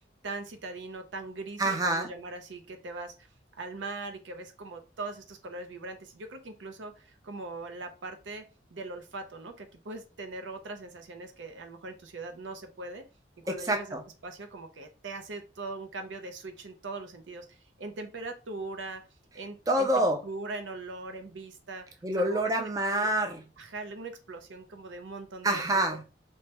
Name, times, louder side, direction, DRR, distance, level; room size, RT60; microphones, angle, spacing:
voice 1, 0.2-3.3 3.6-8.4 8.7-13.1 13.4-13.9 14.2-19.0 19.3-19.9 20.2-21.9 22.3-22.7 23.0-23.1 23.6-25.6, right 3 dB, 90° right, 0.6 m, -40 dB
voice 2, 1.6-2.1 13.7-14.0 19.7-20.2 22.0-23.4 25.4-26.0, right 1 dB, 20° right, 0.3 m, -26 dB
3.1 x 2.2 x 2.8 m
head